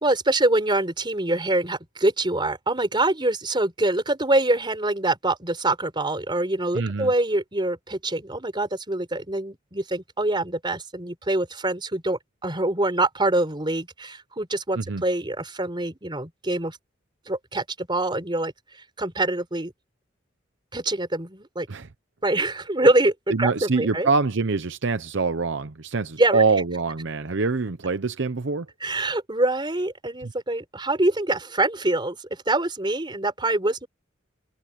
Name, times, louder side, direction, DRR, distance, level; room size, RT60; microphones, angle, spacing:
voice 1, 0.0-16.8 17.3-18.5 19.0-19.7 20.7-21.7 22.2-24.1 26.2-26.4 28.8-33.9, right 2 dB, 25° right, 4.2 m, -25 dB
voice 2, 6.7-7.1 14.7-15.0 21.7-21.9 23.3-28.7 30.2-30.3, right 4 dB, 60° right, 0.8 m, -25 dB
head